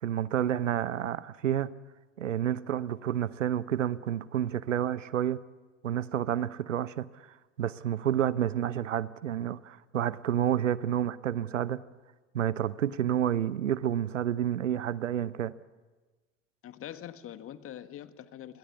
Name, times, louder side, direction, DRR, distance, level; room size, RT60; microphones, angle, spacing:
voice 1, 0.0-1.7 2.2-5.4 5.8-7.1 7.6-11.8 12.3-15.5, right 10 dB, 75° right, 0.9 m, -29 dB
voice 2, 16.6-18.6, left 11 dB, 35° left, 1.7 m, -44 dB
29.0 x 22.5 x 8.3 m
figure-of-eight pair, 75°, 37 cm